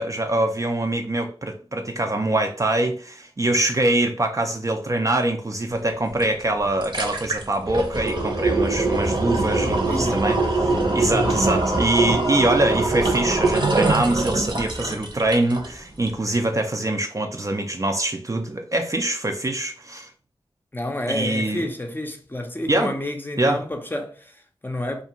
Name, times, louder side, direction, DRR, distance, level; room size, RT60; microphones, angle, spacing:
voice 1, 0.0-20.1 21.1-21.6 22.7-22.9 23.4-23.6, right 1 dB, 35° right, 0.4 m, -24 dB
sound 1, 6.2-6.3 6.6-15.7 16.1-16.2, right 3 dB, 50° right, 0.8 m, -22 dB
voice 2, 9.6-10.3 11.1-11.4 20.7-25.0, left 1 dB, 20° left, 0.5 m, -30 dB
2.4 x 2.2 x 2.8 m
cardioid pair, 40°, 10 cm